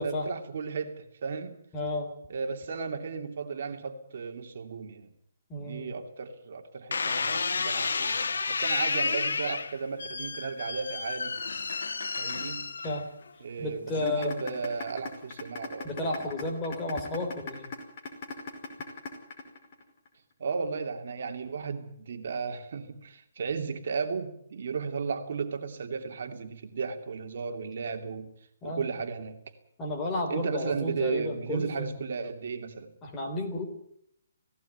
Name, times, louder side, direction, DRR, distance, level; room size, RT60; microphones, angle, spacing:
voice 1, 0.0-1.6 2.3-5.1 5.6-11.4 12.2-12.6 13.4-16.2 20.4-28.3 28.6-29.4 30.3-32.9, right 5 dB, 55° right, 6 dB, 2.8 m, -35 dB
voice 2, 1.7-2.1 5.5-5.9 12.8-13.1 13.6-14.4 15.8-17.7 28.6-28.9 29.8-31.9 33.0-33.7, left 2 dB, 15° left, 1 dB, 3.4 m, -32 dB
sound 1, 6.9-13.3 13.9-14.4, left 4 dB, 90° left, 1.6 m, -31 dB
sound 2, 14.1-20.1, left 4 dB, 35° left, 5.1 m, -38 dB
18.0 x 16.5 x 9.5 m, 0.69 s
hypercardioid pair, 165°, 0 cm